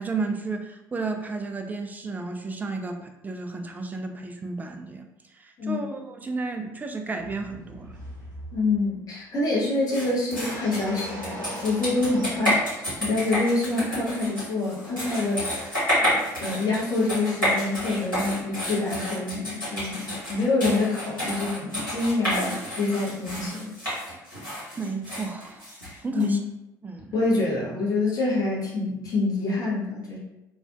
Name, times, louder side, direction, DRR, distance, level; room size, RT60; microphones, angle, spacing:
voice 1, 0.0-5.1 5.4-8.0 24.8-25.7 26.0-26.4 26.8-27.1, right 3 dB, 15° right, 5 dB, 0.3 m, -32 dB
voice 2, 5.6-5.9 8.5-23.7 26.1-26.5 27.1-30.2, left 3 dB, 35° left, -5 dB, 0.7 m, -26 dB
sound 1, 7.2-8.9 10.3-12.7, equal, 80° right, 0.5 m, -40 dB
sound 2, 9.9-26.2, equal, 85° left, 1.2 m, -30 dB
2.4 x 2.1 x 2.4 m, 0.92 s
figure-of-eight pair, 55°, 10 cm